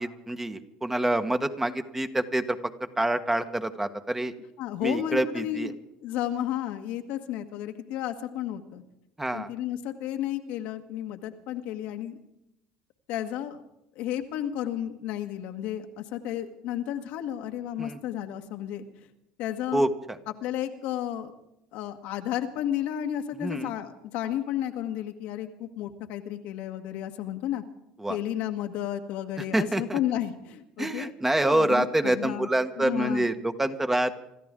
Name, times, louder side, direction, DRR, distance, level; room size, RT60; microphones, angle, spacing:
voice 1, 0.0-2.6 3.0-4.3 4.8-5.7 9.2-9.5 17.8-18.0 19.7-20.2 23.4-23.7 28.0-28.2 29.5-30.0 30.8-34.2, right 1 dB, 10° right, 8 dB, 1.4 m, -26 dB
voice 2, 4.6-5.8 6.0-8.8 9.3-12.2 13.1-13.6 13.9-18.8 19.4-19.9 20.4-21.3 21.7-27.6 28.1-31.1 31.5-32.5 32.8-33.2, left 11 dB, 65° left, 6 dB, 1.6 m, -32 dB
26.5 x 13.5 x 3.8 m, 0.85 s
hypercardioid pair, 75°, 3 cm